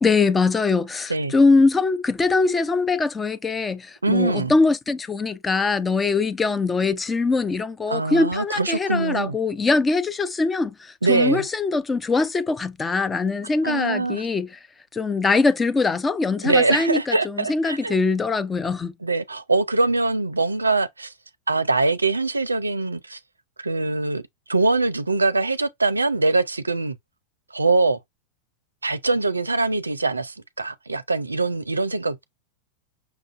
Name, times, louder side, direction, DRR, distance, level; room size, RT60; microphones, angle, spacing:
voice 1, 0.0-14.5 14.9-18.9, left 3 dB, 15° left, 0.4 m, -22 dB
voice 2, 4.0-4.5 7.9-9.3 11.0-11.4 13.6-14.2 16.4-17.9 19.0-21.1 21.5-23.2 23.6-24.2 24.5-27.0 27.5-28.0 28.8-32.2, right 3 dB, 80° right, 0.4 m, -23 dB
5.8 x 2.4 x 2.4 m
figure-of-eight pair, 90°, 0 cm